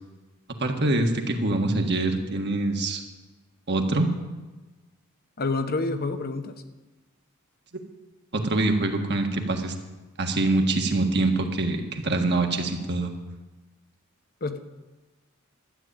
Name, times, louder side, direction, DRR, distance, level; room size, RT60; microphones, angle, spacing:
voice 1, 0.6-3.0 3.7-4.1 8.3-9.7 10.2-13.1, right 2 dB, 55° right, 4 dB, 1.6 m, -24 dB
voice 2, 5.4-6.6 14.4-14.6, left 3 dB, 45° left, 9 dB, 1.0 m, -28 dB
13.0 x 8.3 x 8.9 m, 1.2 s
head